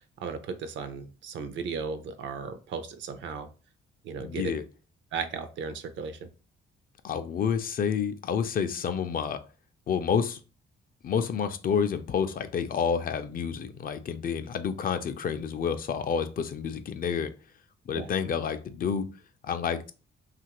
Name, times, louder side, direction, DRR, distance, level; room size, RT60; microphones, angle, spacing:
voice 1, 0.2-3.5 4.0-4.5 5.1-6.3 17.9-18.1, right 5 dB, 70° right, 9 dB, 0.5 m, -35 dB
voice 2, 4.2-4.6 7.0-9.4 9.9-10.4 11.0-17.3 17.9-19.1 19.4-19.9, left 7 dB, 45° left, 9 dB, 0.4 m, -29 dB
2.9 x 2.4 x 2.9 m, 0.34 s
cardioid pair, 90°, 20 cm